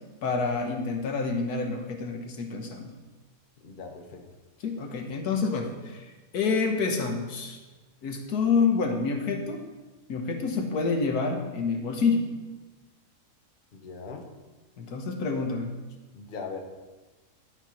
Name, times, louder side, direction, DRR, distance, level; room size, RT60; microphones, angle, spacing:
voice 1, 0.2-2.9 4.6-7.6 8.0-9.6 10.1-12.3 14.8-15.7, left 4 dB, 75° left, 4 dB, 1.5 m, -28 dB
voice 2, 3.6-4.3 13.7-14.3 16.1-16.6, left 4 dB, 40° left, 4 dB, 0.9 m, -40 dB
12.0 x 4.5 x 5.6 m, 1.2 s
omnidirectional pair, 1.7 m